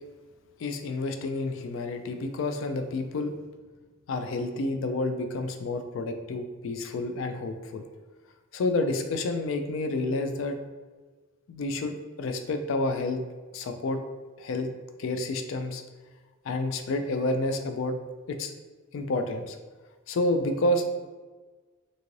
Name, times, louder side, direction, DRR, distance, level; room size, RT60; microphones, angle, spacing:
voice 1, 0.6-3.3 4.1-7.9 8.5-10.6 11.5-13.2 13.5-14.0 14.4-14.7 15.0-15.8 16.5-17.9 18.3-18.5 18.9-19.6 20.1-20.8, left 2 dB, 65° left, 7 dB, 0.3 m, -29 dB
2.7 x 2.5 x 3.0 m, 1.3 s
head